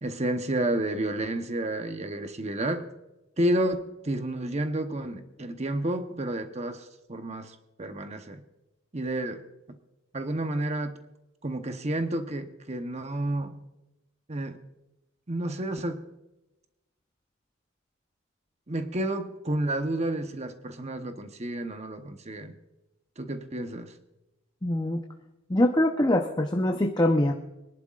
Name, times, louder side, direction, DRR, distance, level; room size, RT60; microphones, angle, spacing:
voice 1, 0.0-2.9 3.4-8.4 8.9-9.4 10.1-11.0 11.4-13.6 14.3-14.6 15.3-16.0 18.7-22.6 23.2-24.0, right 1 dB, 30° right, 7 dB, 0.9 m, -30 dB
voice 2, 24.6-25.0 25.5-27.3, left 1 dB, 20° left, 2 dB, 0.7 m, -23 dB
24.5 x 11.0 x 2.5 m, 0.97 s
head